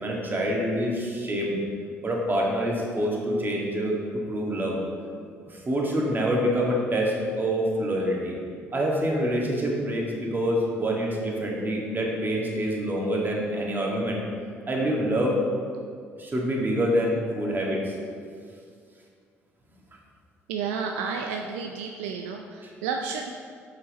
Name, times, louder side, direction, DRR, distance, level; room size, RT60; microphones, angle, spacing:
voice 1, 0.0-1.6 2.0-4.8 5.5-8.3 8.7-14.2 14.7-15.4 16.2-17.9 22.6-22.7, equal, 30° right, -2 dB, 1.8 m, -26 dB
voice 2, 20.5-22.4 22.8-23.3, right 5 dB, 75° right, 3 dB, 0.4 m, -31 dB
6.5 x 5.8 x 4.1 m, 2.2 s
figure-of-eight pair, 50°, 7 cm